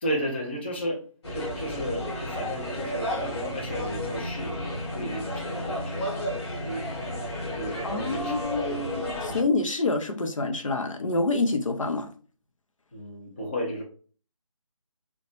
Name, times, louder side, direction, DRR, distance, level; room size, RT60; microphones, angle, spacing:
voice 1, 0.0-1.0 1.3-6.2 6.6-6.9 7.4-8.9 12.9-13.8, equal, 20° left, 0.5 m, -33 dB
sound 1, 1.2-9.4, left 1 dB, 50° left, 1.1 m, -32 dB
voice 2, 7.8-12.1, left 3 dB, 70° left, 0.5 m, -27 dB
2.8 x 2.1 x 2.8 m
figure-of-eight pair, 155°, 17 cm